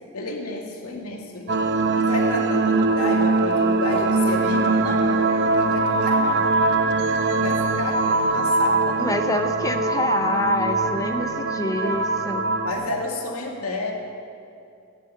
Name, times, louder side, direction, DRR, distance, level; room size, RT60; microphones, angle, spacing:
voice 1, 0.1-1.5 2.0-6.5 7.4-9.0 12.6-13.9, left 2 dB, 75° left, 1 dB, 2.3 m, -30 dB
sound 1, 1.5-12.7, right 3 dB, 50° right, 0.8 m, -22 dB
voice 2, 9.0-12.5, left 2 dB, 15° left, 6 dB, 0.5 m, -27 dB
13.5 x 10.5 x 8.4 m, 2.6 s
head